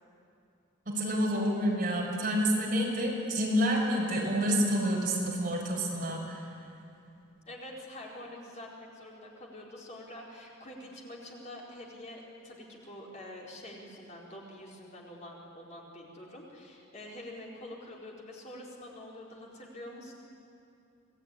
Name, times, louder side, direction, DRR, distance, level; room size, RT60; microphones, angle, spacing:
voice 1, 0.9-6.4, equal, 40° right, -2 dB, 6.4 m, -28 dB
voice 2, 7.5-20.1, left 1 dB, 35° left, -3 dB, 4.4 m, -46 dB
26.5 x 19.5 x 10.0 m, 2.6 s
head